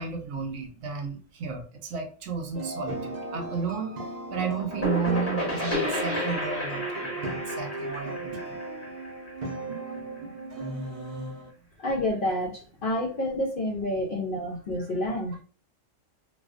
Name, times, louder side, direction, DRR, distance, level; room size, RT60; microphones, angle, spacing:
voice 1, 0.0-4.0 4.3-8.6, right 6 dB, 70° right, 4 dB, 0.9 m, -33 dB
sound 1, 2.5-11.5, right 2 dB, 45° right, 0.6 m, -36 dB
sound 2, 4.4-9.9, left 1 dB, 15° left, 0.7 m, -32 dB
voice 2, 11.8-15.4, left 1 dB, 65° left, 1 dB, 0.5 m, -29 dB
2.3 x 2.3 x 2.3 m, 0.37 s
omnidirectional pair, 1.4 m